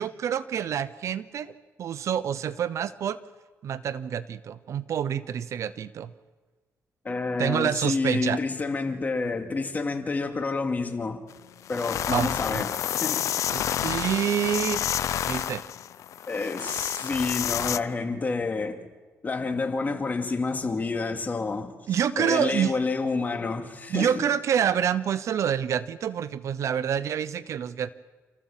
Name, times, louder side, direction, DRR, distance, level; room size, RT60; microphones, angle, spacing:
voice 1, 0.0-3.2 3.6-6.1 7.4-8.4 12.1-12.6 13.5-14.9 15.2-15.6 21.9-22.7 23.9-27.9, right 9 dB, 65° right, 0.8 m, -27 dB
voice 2, 7.0-11.2 11.7-13.2 16.3-18.8 19.2-21.8 22.2-24.2, left 3 dB, 30° left, 2.5 m, -29 dB
sound 1, 11.3-11.4 11.7-17.8, left 10 dB, 70° left, 0.6 m, -29 dB
28.5 x 14.5 x 7.5 m
cardioid pair, 100°, 5 cm